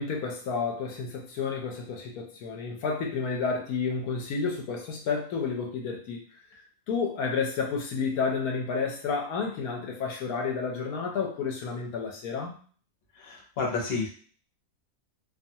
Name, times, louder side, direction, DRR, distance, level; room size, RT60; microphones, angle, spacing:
voice 1, 0.0-6.2 6.5-6.6 6.9-12.6, left 5 dB, 80° left, 1 dB, 1.1 m, -31 dB
voice 2, 13.2-14.1, left 4 dB, 50° left, -1 dB, 0.9 m, -30 dB
2.6 x 2.3 x 2.7 m, 0.43 s
omnidirectional pair, 1.6 m